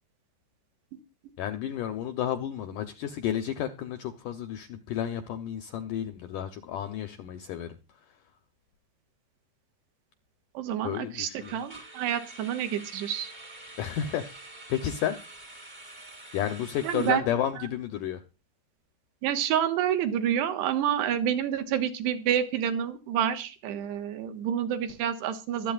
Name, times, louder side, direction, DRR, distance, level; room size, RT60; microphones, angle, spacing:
voice 1, 1.4-7.8 10.8-11.6 13.8-14.2 14.7-15.2 16.3-18.2, left 10 dB, 85° left, 8 dB, 1.8 m, -31 dB
sound 1, 5.4-5.5 5.8-6.0 6.4-6.5 11.4-17.1, right 2 dB, 30° right, 0.7 m, -47 dB
voice 2, 10.5-13.3 16.8-17.3 17.6-17.7 19.2-25.7, right 10 dB, 80° right, 7 dB, 3.4 m, -28 dB
23.5 x 8.5 x 2.4 m, 0.30 s
omnidirectional pair, 4.9 m